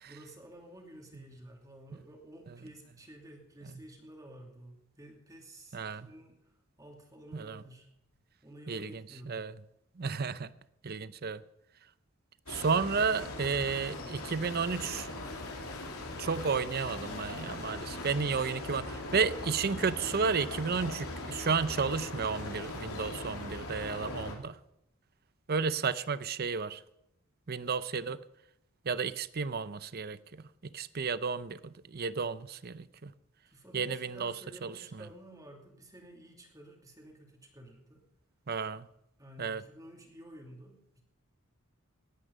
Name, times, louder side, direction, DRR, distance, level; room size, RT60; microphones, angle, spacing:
voice 1, 0.0-6.4 6.8-7.9 8.4-9.5 33.4-38.1 39.2-41.0, right 1 dB, 15° right, 1 dB, 2.7 m, -52 dB
voice 2, 5.7-6.1 7.3-7.6 8.7-9.5 10.0-10.5 10.8-11.4 12.5-15.1 16.2-24.6 25.5-26.8 27.5-28.2 28.9-33.1 33.7-34.3 34.6-34.7 38.5-38.9 39.4-39.6, right 5 dB, 45° right, 15 dB, 0.6 m, -32 dB
sound 1, 12.5-24.4, left 2 dB, 80° left, 3.1 m, -40 dB
18.0 x 9.9 x 5.3 m, 0.81 s
head